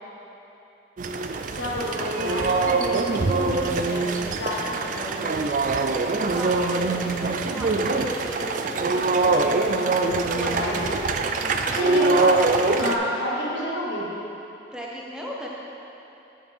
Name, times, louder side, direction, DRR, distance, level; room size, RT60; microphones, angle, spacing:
sound 1, 1.0-13.0, right 3 dB, 45° right, 0.3 m, -23 dB
voice 1, 1.5-5.3 10.2-11.2 11.7-12.4 12.8-14.1, left 1 dB, 85° left, -5 dB, 1.5 m, -30 dB
voice 2, 6.3-10.4 11.4-11.7 14.7-15.5, equal, 5° right, -4 dB, 0.8 m, -37 dB
8.2 x 7.3 x 3.6 m, 3.0 s
head